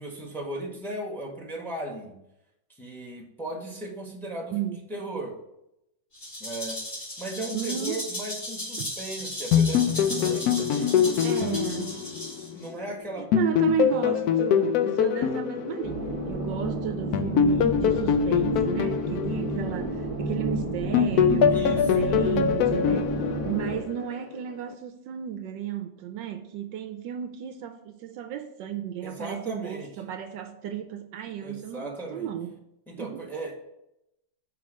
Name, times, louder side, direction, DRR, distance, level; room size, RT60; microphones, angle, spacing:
voice 1, 0.0-2.2 2.8-5.3 6.4-6.8 7.2-11.6 12.5-13.3 21.5-22.1 29.0-29.9 31.4-32.3 32.9-33.5, right 1 dB, ahead, 1.3 m, -37 dB
Rattle (instrument), 6.1-12.7, left 1 dB, 35° left, 2.7 m, -36 dB
voice 2, 7.5-8.0 8.8-8.9 11.0-12.0 13.2-32.5 33.0-33.2, right 10 dB, 75° right, 1.2 m, -33 dB
sound 1, 9.5-12.9 13.3-16.6 17.1-20.5 20.9-24.2, left 8 dB, 75° left, 0.9 m, -24 dB
sound 2, 15.8-23.8, right 1 dB, 25° right, 0.8 m, -31 dB
6.0 x 4.5 x 6.2 m
omnidirectional pair, 2.1 m